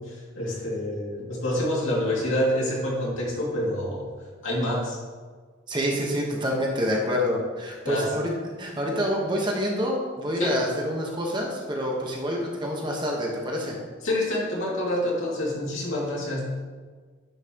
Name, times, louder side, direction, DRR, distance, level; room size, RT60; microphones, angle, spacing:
voice 1, 0.0-4.1 4.4-5.0 7.8-8.1 10.4-10.6 14.0-16.6, left 1 dB, 80° left, -4 dB, 2.3 m, -27 dB
voice 2, 5.7-8.3 8.6-13.8, equal, 25° right, -1 dB, 1.1 m, -27 dB
9.9 x 5.7 x 2.9 m, 1.5 s
head